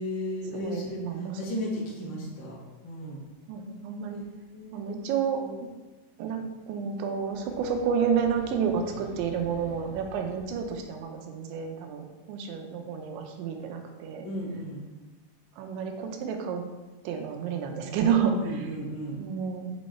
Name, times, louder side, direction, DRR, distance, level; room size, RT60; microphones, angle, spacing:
voice 1, 0.0-3.2 4.1-4.2 4.5-5.1 5.4-5.6 14.2-14.8 18.3-19.2, equal, 80° left, -4 dB, 1.0 m, -35 dB
voice 2, 0.5-1.4 2.0-2.2 3.5-4.2 4.7-5.4 6.2-14.3 15.6-16.6 17.0-18.7 19.2-19.7, right 7 dB, 90° right, 3 dB, 3.2 m, -30 dB
sound 1, 7.2-11.1, equal, 70° right, 3.0 m, -48 dB
7.5 x 5.4 x 4.4 m, 1.2 s
omnidirectional pair, 5.2 m